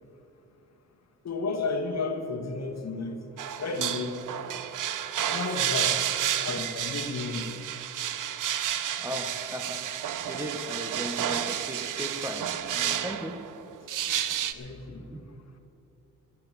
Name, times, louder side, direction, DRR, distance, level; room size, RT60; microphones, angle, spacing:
voice 1, 1.2-3.2 3.6-4.1 5.3-5.9 6.4-7.6 14.6-15.0, left 3 dB, 50° left, 4 dB, 1.6 m, -32 dB
sound 1, 3.4-14.5, right 10 dB, 65° right, 0.7 m, -31 dB
voice 2, 9.0-9.9 10.3-13.4 14.1-14.2 15.0-15.2, equal, 10° right, 5 dB, 1.2 m, -37 dB
14.0 x 7.8 x 8.9 m, 2.7 s
cardioid pair, 80°, 34 cm